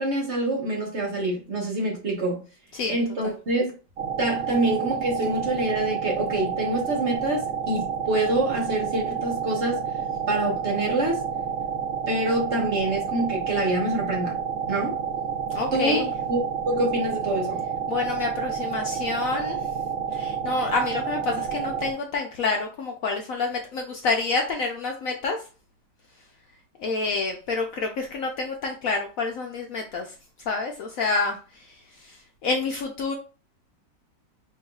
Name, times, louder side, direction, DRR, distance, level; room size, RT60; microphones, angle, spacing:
voice 1, 0.0-2.4 2.9-3.7 4.2-9.8 10.3-11.2 12.1-14.4 14.7-14.9 15.7-16.4 16.7-17.6, right 1 dB, 45° right, 1.2 m, -26 dB
sound 1, 4.0-21.9, right 7 dB, 80° right, 0.5 m, -29 dB
voice 2, 15.5-16.1 17.9-19.6 20.1-25.4 26.8-30.1 30.5-33.1, left 3 dB, 70° left, 0.8 m, -28 dB
5.5 x 3.1 x 2.3 m
omnidirectional pair, 1.9 m